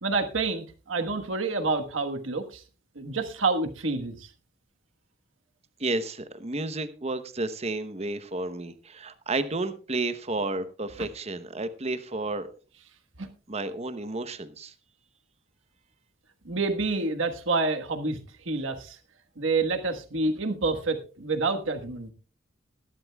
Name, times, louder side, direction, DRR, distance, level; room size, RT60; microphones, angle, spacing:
voice 1, 0.0-2.6 2.9-4.3 13.2-13.3 16.4-19.0 19.4-22.1, right 3 dB, 85° right, 6 dB, 1.4 m, -28 dB
voice 2, 5.8-12.5 13.5-14.7, right 2 dB, 35° right, 12 dB, 0.9 m, -31 dB
20.0 x 11.5 x 2.3 m, 0.35 s
head